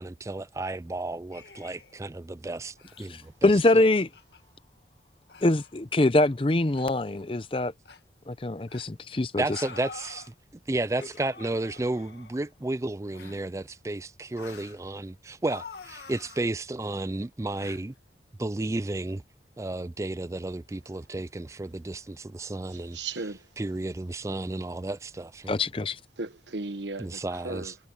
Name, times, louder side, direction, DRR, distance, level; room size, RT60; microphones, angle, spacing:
voice 1, 0.0-3.5 9.4-10.3 10.7-17.9 18.4-19.2 19.6-23.0 23.6-25.6 27.0-27.7, right 2 dB, 15° right, 0.4 m, -32 dB
sound 1, 1.3-2.0 2.8-3.1 3.7-3.8 4.1-4.4 5.3-5.7 6.7-6.9 7.9-8.0 8.7-8.9 9.5-10.3 11.0-12.5 13.1-13.5 14.4-14.8 15.5-16.5 17.6-17.8, left 4 dB, 65° left, 1.9 m, -46 dB
voice 2, 3.1-4.1 5.4-7.7 8.3-9.6 25.5-26.0, left 2 dB, 30° left, 0.6 m, -24 dB
voice 3, 22.7-23.6 26.2-27.8, right 3 dB, 85° right, 1.3 m, -37 dB
head